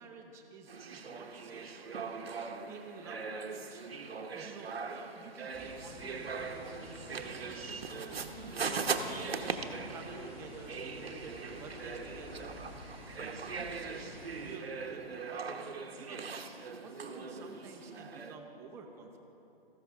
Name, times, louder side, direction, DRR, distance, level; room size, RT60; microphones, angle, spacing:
voice 1, 0.0-2.0 2.6-3.8 4.3-7.9 8.5-12.6 13.1-15.4 16.0-19.2, right 4 dB, 10° right, 2 dB, 0.7 m, -50 dB
sound 1, 0.7-18.4, right 5 dB, 80° right, 1.1 m, -40 dB
sound 2, 5.5-14.6, left 1 dB, 15° left, 1.8 m, -50 dB
18.0 x 14.5 x 3.5 m, 2.9 s
hypercardioid pair, 145°, 30 cm